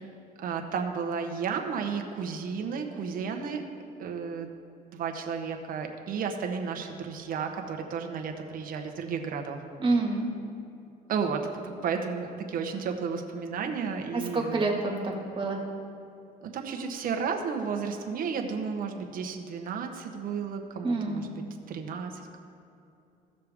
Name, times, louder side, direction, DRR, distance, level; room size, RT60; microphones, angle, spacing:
voice 1, 0.4-3.6 4.0-4.5 4.9-9.6 11.1-14.8 16.4-22.4, right 6 dB, 55° right, 4 dB, 1.1 m, -33 dB
voice 2, 9.8-10.3 14.1-15.6 20.8-21.2, right 3 dB, 30° right, 0 dB, 1.8 m, -27 dB
16.0 x 6.6 x 3.6 m, 2.7 s
cardioid pair, 110°, 17 cm